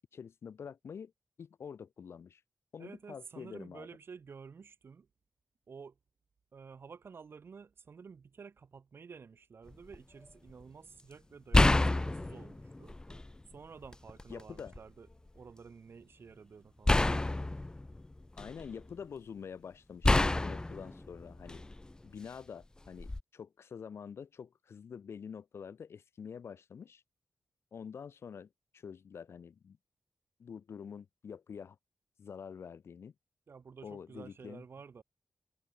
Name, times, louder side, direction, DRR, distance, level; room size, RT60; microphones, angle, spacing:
voice 1, 0.1-1.1 1.4-2.4 2.7-3.9 14.3-14.7 18.4-21.7 22.0-27.0 27.7-29.8 30.4-31.8 32.2-33.1 33.8-34.6, left 7 dB, 70° left, 1.1 m, -46 dB
voice 2, 2.8-5.1 5.7-6.0 6.5-13.0 13.5-15.1 15.3-17.1 33.5-35.0, right 5 dB, 60° right, 3.8 m, -51 dB
sound 1, 9.7-10.0 11.5-13.4 13.8-14.8 16.9-18.8 20.0-21.9 23.0-23.2, left 2 dB, 15° left, 0.6 m, -29 dB
wide cardioid pair, 100°, 4 cm